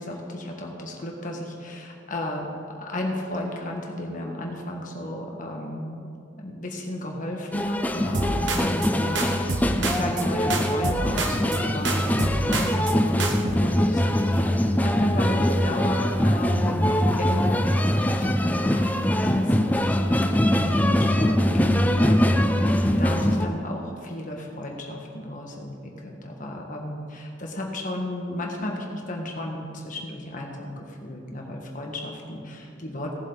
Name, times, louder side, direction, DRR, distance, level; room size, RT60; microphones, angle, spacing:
voice 1, 0.0-6.1 6.4-33.2, left 1 dB, 45° left, 0 dB, 1.7 m, -34 dB
sound 1, 7.5-23.5, equal, 10° left, 0.5 m, -22 dB
sound 2, 8.1-8.9 9.2-10.3 10.5-11.6 11.8-12.9 13.2-13.6, right 3 dB, 70° right, 1.0 m, -29 dB
17.5 x 7.5 x 4.1 m, 2.5 s
head